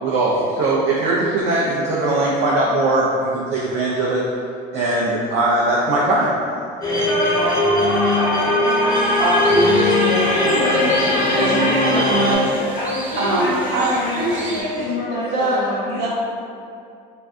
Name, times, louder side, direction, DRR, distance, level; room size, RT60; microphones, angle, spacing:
voice 1, 0.0-4.2 4.7-6.4, right 2 dB, 60° right, -4 dB, 0.5 m, -20 dB
sound 1, 6.8-12.3, left 1 dB, 20° left, 1.1 m, -18 dB
sound 2, 8.9-14.6, equal, 10° right, 0.7 m, -33 dB
voice 2, 9.1-10.3 10.6-10.8 11.3-12.6 13.2-16.1, right 1 dB, 75° right, -7 dB, 0.8 m, -22 dB
voice 3, 10.3-10.9 11.2-12.0 12.6-16.1, left 1 dB, 45° left, -10 dB, 1.0 m, -27 dB
2.5 x 2.2 x 3.4 m, 2.4 s
hypercardioid pair, 80°, 20 cm